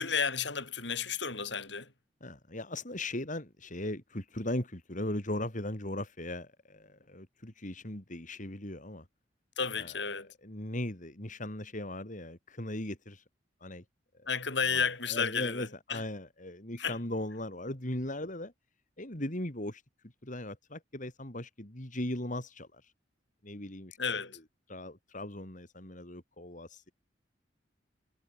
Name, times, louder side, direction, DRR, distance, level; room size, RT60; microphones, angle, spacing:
voice 1, 0.0-1.9 9.6-10.3 14.3-16.0 16.8-17.0 24.0-24.4, left 6 dB, 70° left, 7.8 m, -32 dB
voice 2, 2.2-9.1 9.8-13.2 13.6-13.8 14.1-14.3 14.7-18.5 19.0-19.8 20.2-22.9 23.4-24.2 24.7-26.9, left 1 dB, 45° left, 4.4 m, -38 dB
head